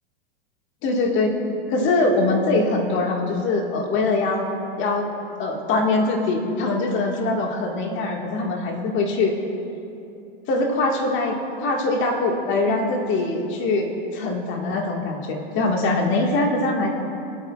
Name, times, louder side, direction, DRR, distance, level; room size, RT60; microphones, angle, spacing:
voice 1, 0.8-1.3 1.7-4.5 4.8-5.1 5.4-9.3 10.5-16.9, left 2 dB, 40° left, 1 dB, 1.9 m, -22 dB
22.0 x 9.0 x 2.4 m, 2.9 s
hypercardioid pair, 120°, 30 cm